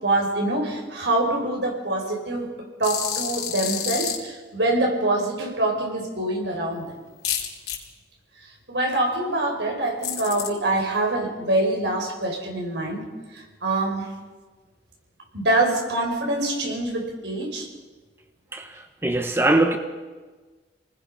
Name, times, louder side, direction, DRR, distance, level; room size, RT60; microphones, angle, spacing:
voice 1, 0.0-2.5 2.8-7.0 8.7-13.0 13.3-14.1 15.3-17.7, right 2 dB, 90° right, 1 dB, 5.7 m, -25 dB
sound 1, 2.8-4.2 7.2-7.8 10.0-10.5, left 9 dB, 70° left, 3.9 m, -28 dB
voice 2, 18.5-19.8, right 2 dB, 15° right, 5 dB, 1.3 m, -22 dB
29.5 x 20.0 x 5.7 m, 1.3 s
head